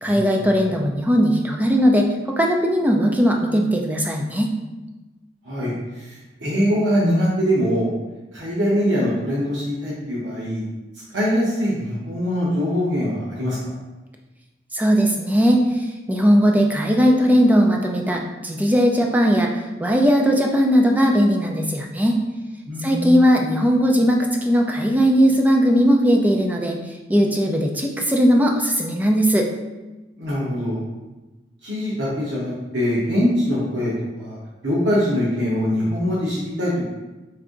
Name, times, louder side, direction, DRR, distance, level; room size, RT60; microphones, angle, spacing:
voice 1, 0.0-4.5 14.7-15.6 16.1-19.5 19.8-22.2 22.8-26.8 27.1-29.5, equal, 10° right, 1 dB, 0.5 m, -18 dB
voice 2, 5.4-7.9 8.3-10.6 11.1-13.6 22.7-23.2 30.2-30.8 31.6-34.4 34.6-36.9, equal, 85° right, -7 dB, 1.1 m, -23 dB
4.6 x 2.6 x 3.7 m, 1.1 s
head